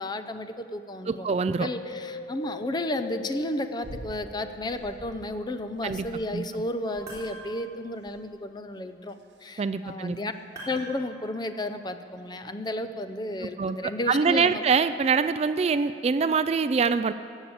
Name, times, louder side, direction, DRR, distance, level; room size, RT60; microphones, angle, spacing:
voice 1, 0.0-10.3 10.7-14.6, left 1 dB, 25° left, 9 dB, 0.6 m, -33 dB
voice 2, 1.1-1.7 5.8-6.0 6.3-6.4 9.6-10.2 13.6-13.8 14.1-17.1, right 5 dB, 35° right, 12 dB, 0.3 m, -24 dB
Wind, 1.3-4.9 5.4-6.7 7.2-7.3, left 6 dB, 85° left, 0.7 m, -42 dB
sound 1, 3.8-4.3 4.7-5.3 5.8-6.4 6.9-7.4 8.0-8.4 9.1-9.5 10.4-10.5, right 1 dB, 80° right, 0.8 m, -46 dB
sound 2, 6.9-7.8 10.6-11.7, right 1 dB, 20° right, 3.5 m, -43 dB
16.5 x 7.3 x 8.6 m, 2.7 s
head